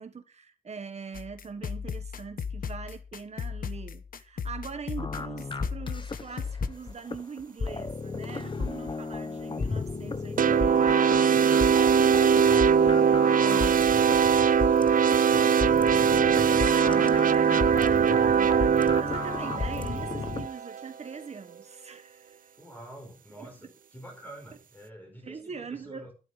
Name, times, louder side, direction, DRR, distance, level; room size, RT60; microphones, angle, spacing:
voice 1, 0.0-12.1 13.4-13.9 16.6-22.5 23.4-23.5 25.2-26.1, right 5 dB, 50° right, 1.5 m, -42 dB
sound 1, 1.1-6.7, left 6 dB, 75° left, 1.1 m, -36 dB
sound 2, 5.0-20.5, left 4 dB, 35° left, 1.1 m, -34 dB
sound 3, 10.4-20.9, right 7 dB, 70° right, 0.6 m, -22 dB
voice 2, 12.3-12.9 13.2-16.0 22.6-26.1, equal, 10° left, 5.1 m, -47 dB
12.5 x 11.5 x 5.0 m
wide cardioid pair, 160°, 15 cm